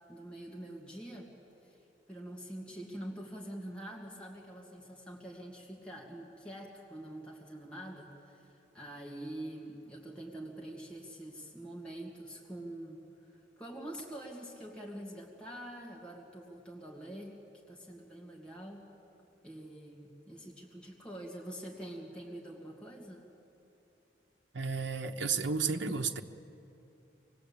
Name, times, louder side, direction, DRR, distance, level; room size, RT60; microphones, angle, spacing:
voice 1, 0.1-1.3 1.6-1.8 2.1-17.4 17.7-18.8 19.4-23.3, right 1 dB, 5° left, -3 dB, 2.2 m, -45 dB
voice 2, 24.5-26.2, right 5 dB, 85° right, 5 dB, 0.9 m, -32 dB
24.5 x 20.0 x 8.6 m, 3.0 s
head